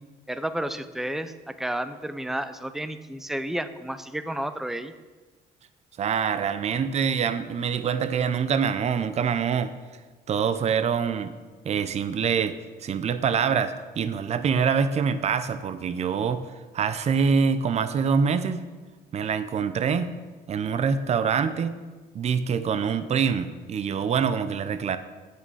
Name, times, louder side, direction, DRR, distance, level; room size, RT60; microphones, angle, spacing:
voice 1, 0.3-4.9, right 1 dB, ahead, 11 dB, 0.6 m, -31 dB
voice 2, 6.0-9.7 10.3-11.3 11.6-18.6 19.1-20.1 20.5-21.8 22.1-25.0, right 6 dB, 40° right, 12 dB, 0.7 m, -25 dB
9.2 x 8.5 x 6.3 m, 1.3 s
cardioid pair, 110°, 17 cm